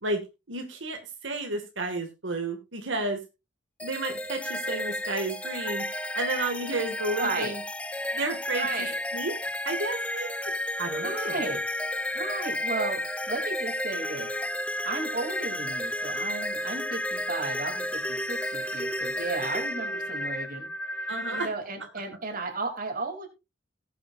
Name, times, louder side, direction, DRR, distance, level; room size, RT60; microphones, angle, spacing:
voice 1, 0.5-3.2 3.8-5.8 6.1-7.6 8.1-8.7 9.1-9.3 9.6-10.3 10.8-11.4 21.1-21.5, right 2 dB, 80° right, 4 dB, 2.0 m, -32 dB
sound 1, 3.8-21.5, left 1 dB, 5° left, 0.6 m, -32 dB
voice 2, 7.2-7.5 8.5-9.0 11.0-11.6 12.1-14.3 14.8-20.7 21.3-23.3, right 3 dB, 45° right, 3 dB, 3.0 m, -34 dB
19.0 x 7.7 x 2.5 m, 0.26 s
head